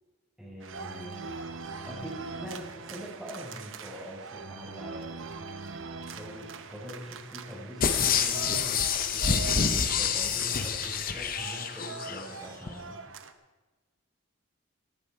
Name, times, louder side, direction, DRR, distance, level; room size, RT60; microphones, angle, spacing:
voice 1, 0.4-1.4 1.8-5.1 6.0-13.0, equal, 5° right, -5 dB, 4.2 m, -43 dB
sound 1, 0.6-13.3, right 4 dB, 65° right, 0.8 m, -42 dB
sound 2, 7.8-12.2 12.7-12.8, left 6 dB, 40° left, 0.8 m, -27 dB
18.0 x 9.6 x 4.5 m, 1.2 s
head